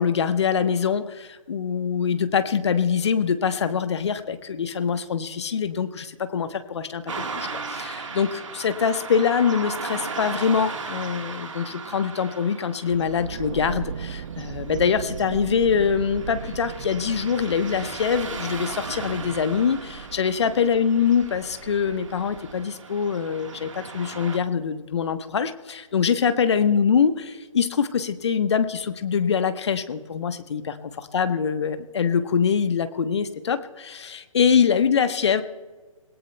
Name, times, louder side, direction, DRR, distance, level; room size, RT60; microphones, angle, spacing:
voice 1, 0.0-7.0 7.4-35.4, left 6 dB, 50° left, 10 dB, 1.1 m, -24 dB
Car passing by / Traffic noise roadway noise, 7.1-24.4, right 4 dB, 60° right, 1.5 m, -37 dB
sound 1, 12.9-22.7, right 7 dB, 35° right, 0.6 m, -37 dB
27.5 x 17.5 x 2.3 m, 1.4 s
figure-of-eight pair, 140°, 18 cm